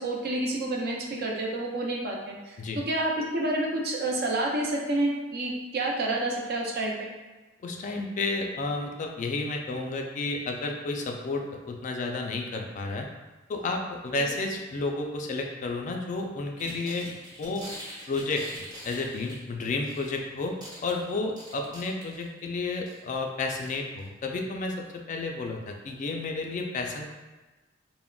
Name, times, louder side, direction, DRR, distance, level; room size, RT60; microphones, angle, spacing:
voice 1, 0.0-2.6 2.9-7.1, right 2 dB, 55° right, -1 dB, 0.5 m, -29 dB
voice 2, 7.6-13.1 13.5-17.1 17.4-17.7 18.1-18.5 18.8-20.6 20.8-27.1, left 3 dB, 40° left, 2 dB, 0.3 m, -31 dB
sound 1, 16.6-20.2 20.4-22.4 22.9-23.1 23.6-23.7 24.0-24.1, equal, 20° right, 0.7 m, -44 dB
3.5 x 2.1 x 2.2 m, 1.2 s
head